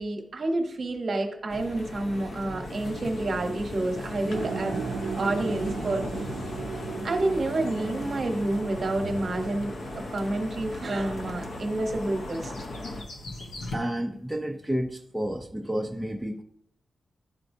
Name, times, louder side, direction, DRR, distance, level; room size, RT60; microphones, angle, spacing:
voice 1, 0.0-4.8 5.2-6.3 7.0-12.5, right 2 dB, 45° right, 4 dB, 0.9 m, -29 dB
sound 1, 1.5-13.0, left 1 dB, 50° left, 0.7 m, -38 dB
sound 2, 2.6-13.8, left 1 dB, 80° left, 1.1 m, -44 dB
sound 3, 4.3-10.5, right 5 dB, 90° right, 0.4 m, -37 dB
voice 2, 13.7-16.4, equal, ahead, 1 dB, 0.4 m, -30 dB
11.5 x 4.4 x 2.6 m, 0.69 s
wide cardioid pair, 170°, 0 cm